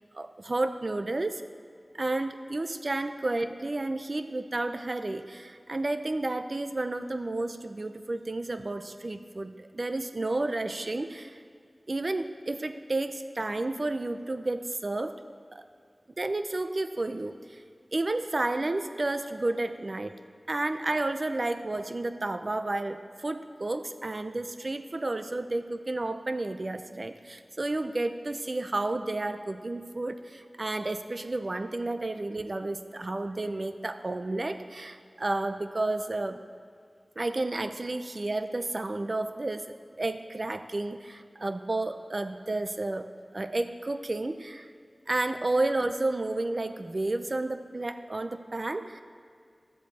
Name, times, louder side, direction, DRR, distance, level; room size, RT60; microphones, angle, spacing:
voice 1, 0.1-1.4 1.9-11.4 11.9-15.2 15.5-15.6 16.2-17.6 17.9-20.2 20.5-36.4 37.2-44.7 45.1-49.0, right 2 dB, 55° right, 9 dB, 0.5 m, -31 dB
12.0 x 7.6 x 4.2 m, 2.3 s
wide cardioid pair, 55°, 0 cm